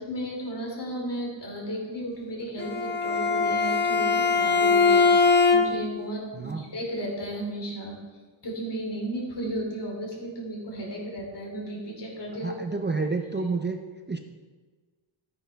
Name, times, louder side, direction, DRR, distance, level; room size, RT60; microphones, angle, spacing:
voice 1, 0.0-8.0 8.4-12.6 13.4-13.5, right 1 dB, 60° left, -2 dB, 3.0 m, -34 dB
Bowed string instrument, 2.6-6.0, left 4 dB, 20° left, 0.7 m, -21 dB
voice 2, 6.3-6.7 12.4-13.8 14.1-14.2, right 4 dB, 25° right, 4 dB, 0.5 m, -29 dB
12.5 x 9.6 x 3.4 m, 1.4 s
wide cardioid pair, 175°, 47 cm